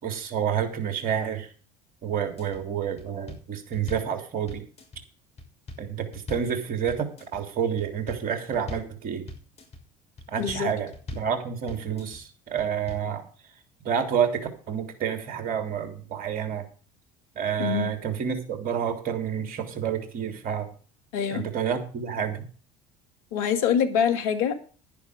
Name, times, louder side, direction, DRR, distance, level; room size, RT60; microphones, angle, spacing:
voice 1, 0.0-1.5 2.0-4.6 5.8-9.3 10.3-13.2 13.8-16.6 17.3-20.7 21.3-22.5, right 8 dB, 55° right, 6 dB, 3.3 m, -29 dB
sound 1, 2.2-2.6 3.0-4.1 4.5-5.0 5.4-6.5 6.9-7.4 7.8-8.2 8.5-8.9 9.3-9.8 10.2-10.6 10.9-11.3 11.7-12.2 12.6-13.1, left 2 dB, 35° left, 6.3 m, -40 dB
voice 2, 10.4-10.7 17.6-17.9 21.1-21.5 23.3-24.6, left 8 dB, 75° left, 8 dB, 2.0 m, -25 dB
11.0 x 10.5 x 5.1 m, 0.40 s
hypercardioid pair, 70°, 18 cm